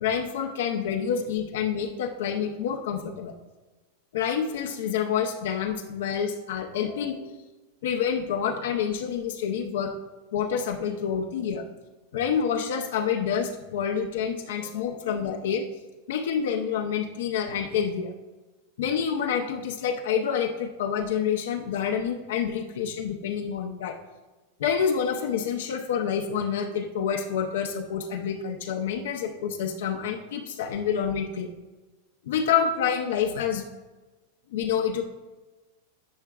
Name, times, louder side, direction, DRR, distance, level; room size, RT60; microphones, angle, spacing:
voice 1, 0.0-3.4 4.1-7.4 7.8-9.9 10.3-11.7 12.1-15.6 16.1-18.1 18.8-24.0 24.6-31.5 32.3-33.6 34.5-35.0, left 7 dB, 75° left, 3 dB, 0.7 m, -28 dB
10.5 x 4.5 x 2.4 m, 1.2 s
supercardioid pair, 130°, 0 cm